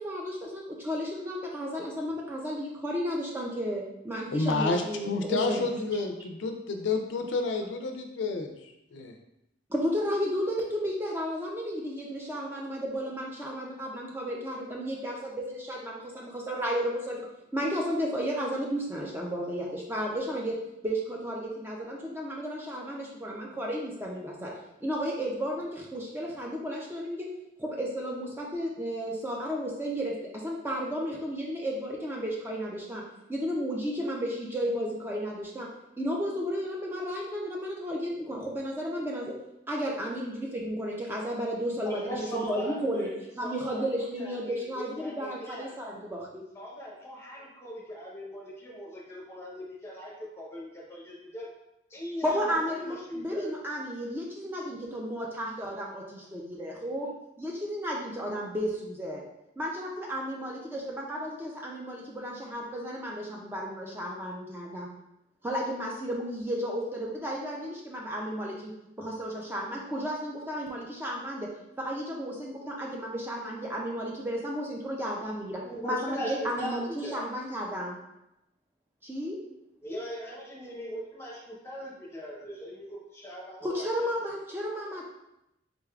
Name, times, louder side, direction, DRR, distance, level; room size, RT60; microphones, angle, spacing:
voice 1, 0.0-5.7 9.7-17.3 17.5-20.6 20.8-24.5 24.8-27.3 27.6-33.0 33.3-35.7 36.0-39.4 39.7-43.1 43.3-46.4 52.2-57.1 57.4-59.2 59.6-64.9 65.4-71.5 71.8-78.0 79.0-79.4 83.6-85.0, equal, 10° right, -2 dB, 0.4 m, -33 dB
voice 2, 4.3-8.5 8.9-9.1, left 3 dB, 70° left, 4 dB, 0.4 m, -29 dB
voice 3, 41.8-43.9 44.2-45.7 46.5-51.5 51.9-53.5 75.6-77.2 79.8-84.1 84.3-84.4, equal, 15° left, -3 dB, 0.7 m, -40 dB
3.9 x 3.4 x 2.3 m, 0.87 s
head